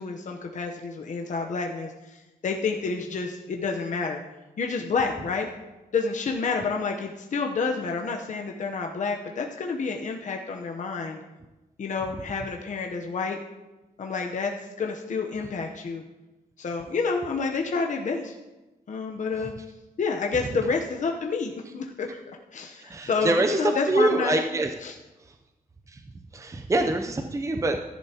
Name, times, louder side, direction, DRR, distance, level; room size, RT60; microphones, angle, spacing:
voice 1, 0.0-4.2 4.6-5.5 5.9-11.2 11.8-13.4 14.0-16.0 16.6-18.3 18.9-19.5 20.0-22.2 22.5-24.4 24.8-25.0, left 4 dB, 55° left, 1 dB, 0.9 m, -29 dB
voice 2, 22.8-23.6 23.9-24.7 26.3-27.8, right 2 dB, 20° right, 5 dB, 0.6 m, -24 dB
14.5 x 10.5 x 2.9 m, 1.1 s
wide cardioid pair, 120°, 15 cm